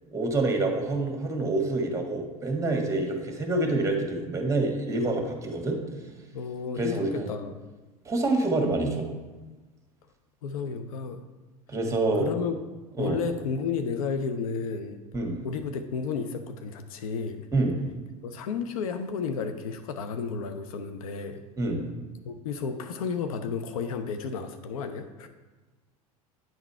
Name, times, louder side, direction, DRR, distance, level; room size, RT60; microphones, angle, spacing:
voice 1, 0.1-5.8 6.8-7.3 8.0-9.1 11.7-12.3 13.0-13.2 15.1-15.4 17.5-17.8 21.6-21.8, right 2 dB, 15° right, 2 dB, 1.5 m, -27 dB
voice 2, 6.3-7.5 10.4-11.2 12.2-12.6 13.0-15.0 15.4-17.5 18.2-21.4 22.2-25.3, left 5 dB, 65° left, 8 dB, 0.6 m, -32 dB
9.2 x 3.9 x 4.3 m, 1.2 s
figure-of-eight pair, 80°, 19 cm